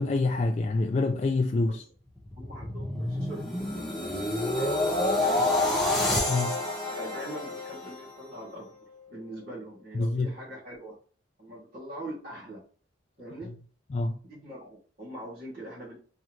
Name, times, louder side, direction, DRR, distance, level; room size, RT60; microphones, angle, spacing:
voice 1, 0.0-1.8 6.3-6.6 9.9-10.3 13.9-14.2, left 3 dB, 35° left, 0.4 m, -26 dB
sound 1, 2.2-8.4 8.9-9.1, left 1 dB, ahead, 1.3 m, -28 dB
voice 2, 2.4-6.0 6.9-8.8 9.1-10.9 11.4-12.6 13.2-13.5 14.2-16.0, right 1 dB, 55° right, 2.6 m, -43 dB
4.4 x 3.8 x 3.1 m
head